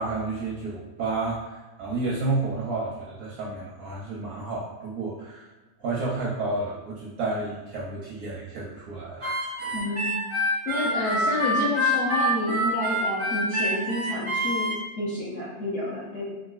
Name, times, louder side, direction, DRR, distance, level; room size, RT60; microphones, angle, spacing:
voice 1, 0.0-5.5 5.8-9.7, right 3 dB, 70° right, -5 dB, 0.9 m, -31 dB
Harmonica, 9.2-14.7, equal, 15° right, 0.5 m, -26 dB
voice 2, 9.7-10.1 10.7-14.7 15.0-16.3, left 1 dB, 60° left, -8 dB, 0.8 m, -29 dB
3.8 x 2.4 x 2.3 m, 1.2 s
omnidirectional pair, 2.0 m